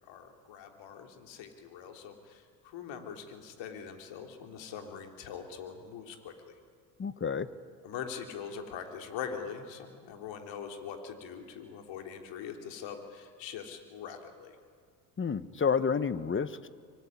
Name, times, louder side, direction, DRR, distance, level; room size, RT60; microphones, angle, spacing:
voice 1, 0.0-6.6 7.8-14.6, left 7 dB, 60° left, 4 dB, 3.5 m, -43 dB
voice 2, 7.0-7.5 15.2-16.7, left 6 dB, 25° left, 14 dB, 1.3 m, -30 dB
25.0 x 24.0 x 9.7 m, 2.1 s
hypercardioid pair, 70°, 50 cm